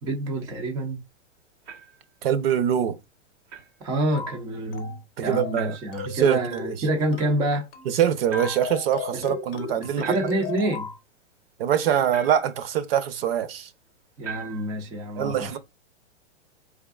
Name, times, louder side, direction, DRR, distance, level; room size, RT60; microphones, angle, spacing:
voice 1, 0.0-1.0 3.8-7.7 9.1-9.2 9.7-10.9 14.2-15.6, right 1 dB, 10° right, 0.4 m, -27 dB
sound 1, 1.7-2.0 3.5-3.7 5.5-6.0 8.3-8.9 10.0-10.6 12.1-12.6 14.2-14.8, right 6 dB, 85° right, 1.2 m, -39 dB
voice 2, 2.2-3.0 5.2-6.7 7.9-10.1 11.6-13.7 15.2-15.6, right 9 dB, 55° right, 0.7 m, -24 dB
sound 2, 4.1-4.4 4.7-5.0 5.3-5.6 5.9-6.2 6.5-6.8 7.1-7.4 7.7-8.0 8.3-11.0, left 7 dB, 30° left, 0.7 m, -36 dB
4.6 x 3.5 x 2.3 m
hypercardioid pair, 145°, 35 cm